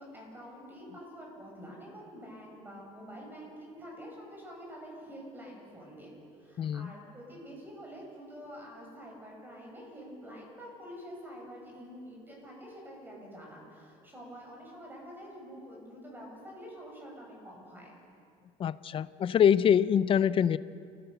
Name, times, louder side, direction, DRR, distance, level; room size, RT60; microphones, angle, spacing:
voice 1, 0.0-6.1 6.4-17.9, equal, 15° right, -1 dB, 7.7 m, -47 dB
voice 2, 6.6-6.9 18.6-20.6, left 8 dB, 40° left, 16 dB, 0.6 m, -24 dB
29.5 x 16.5 x 6.9 m, 2.4 s
cardioid pair, 125°, 15 cm